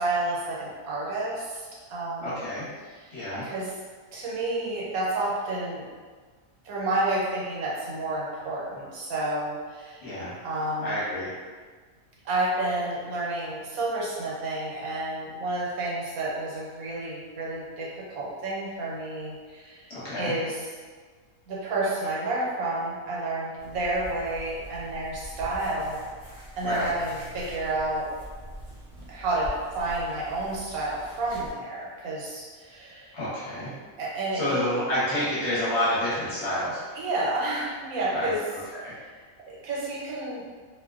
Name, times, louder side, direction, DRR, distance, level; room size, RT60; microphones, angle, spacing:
voice 1, 0.0-2.4 2.9-3.1 3.4-3.7 4.1-5.9 6.6-10.1 10.4-11.0 12.2-19.8 20.2-20.7 21.5-26.0 26.6-28.1 29.1-29.5 29.7-33.2 34.0-34.5 36.9-38.4 39.5-40.4, right 2 dB, 80° right, -5 dB, 1.1 m, -30 dB
voice 2, 2.2-2.6 3.1-3.5 10.0-10.3 10.8-11.3 19.9-20.3 26.6-26.9 33.1-33.7 34.3-36.8 38.1-38.3 38.8-39.0, left 1 dB, 50° left, -10 dB, 1.0 m, -28 dB
sound 1, 23.6-31.5, equal, 40° right, 0.7 m, -43 dB
2.5 x 2.1 x 2.3 m, 1.5 s
omnidirectional pair, 1.5 m